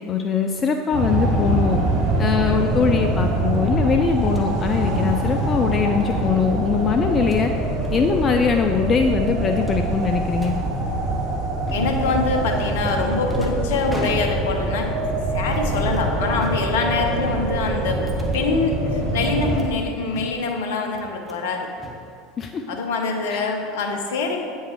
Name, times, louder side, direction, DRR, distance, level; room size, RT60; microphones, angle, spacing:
voice 1, 0.1-1.8 2.2-7.5 7.9-10.6 22.4-22.6 23.3-23.4, left 6 dB, 30° left, 5 dB, 0.3 m, -21 dB
sound 1, 0.9-19.6, right 1 dB, 45° right, 1.1 m, -24 dB
sound 2, 4.3-4.5 6.0-6.2 7.1-7.4 7.8-8.0 8.3-8.5 8.8-8.9 9.6-10.6 11.7-12.1 12.8-14.7 15.5-16.1 16.4-17.1 17.6-18.6 19.2-19.8 20.1-20.6 20.9-21.5 21.8-22.6, equal, 5° right, 0.9 m, -36 dB
voice 2, 11.7-14.9 15.3-18.0 18.3-21.7 22.7-24.4, left 4 dB, 60° left, 3 dB, 0.7 m, -24 dB
8.4 x 5.4 x 3.2 m, 2.5 s
figure-of-eight pair, 75°, 0 cm